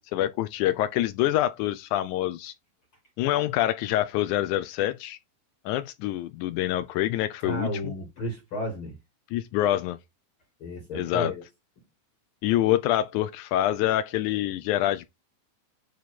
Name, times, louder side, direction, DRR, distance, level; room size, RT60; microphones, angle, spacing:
voice 1, 0.0-2.5 3.2-5.2 5.7-7.9 9.3-10.0 10.9-11.3 12.4-15.1, left 13 dB, 90° left, 1.7 m, -26 dB
voice 2, 7.4-8.9 10.6-11.4, equal, 45° left, 2.0 m, -33 dB
9.3 x 3.1 x 4.3 m
omnidirectional pair, 4.0 m